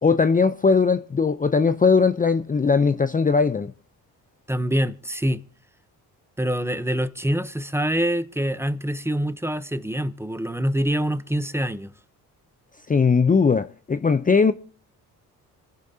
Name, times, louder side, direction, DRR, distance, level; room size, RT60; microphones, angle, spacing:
voice 1, 0.0-3.7 12.9-14.5, left 5 dB, 20° left, 0.6 m, -19 dB
voice 2, 4.5-5.4 6.4-11.9, equal, 5° right, 0.8 m, -25 dB
27.0 x 10.5 x 2.8 m
supercardioid pair, 70°, 37 cm